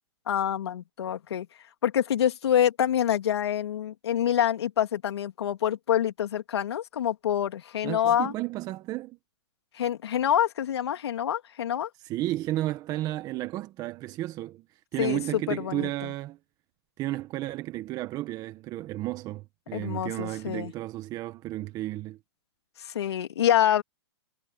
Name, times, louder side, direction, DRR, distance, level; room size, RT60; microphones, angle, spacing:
voice 1, 0.3-1.5 1.8-8.3 9.7-11.9 15.0-16.1 19.7-20.7 22.8-23.8, left 10 dB, 70° left, 3.1 m, -26 dB
voice 2, 7.8-9.2 12.0-14.6 14.9-16.4 17.0-22.2, right 16 dB, 25° right, 1.4 m, -33 dB
hypercardioid pair, 140°, 14 cm